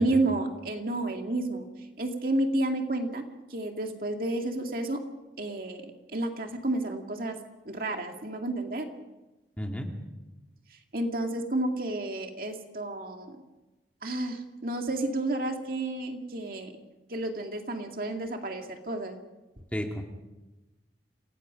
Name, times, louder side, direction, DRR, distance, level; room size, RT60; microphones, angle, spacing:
voice 1, 0.0-1.7 2.0-3.2 3.5-5.0 5.4-7.4 7.7-8.9 10.9-13.4 14.0-16.7 17.1-19.2, right 2 dB, 50° right, 3 dB, 2.2 m, -31 dB
voice 2, 9.6-9.9 19.7-20.0, equal, 10° left, 1 dB, 2.4 m, -32 dB
28.0 x 18.5 x 5.2 m, 1.1 s
head